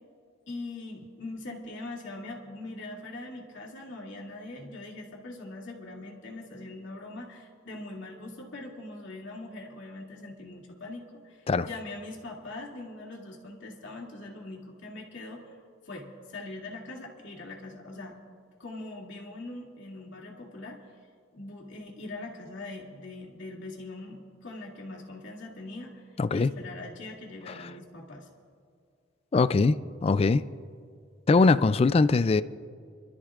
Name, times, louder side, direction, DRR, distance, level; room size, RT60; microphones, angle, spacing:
voice 1, 0.5-15.6 15.8-18.2 18.6-20.8 21.3-28.3, left 2 dB, 70° left, 2.5 m, -42 dB
voice 2, 26.2-26.5 29.3-30.4 31.3-32.4, left 3 dB, 30° left, 0.3 m, -22 dB
28.5 x 13.0 x 2.5 m
head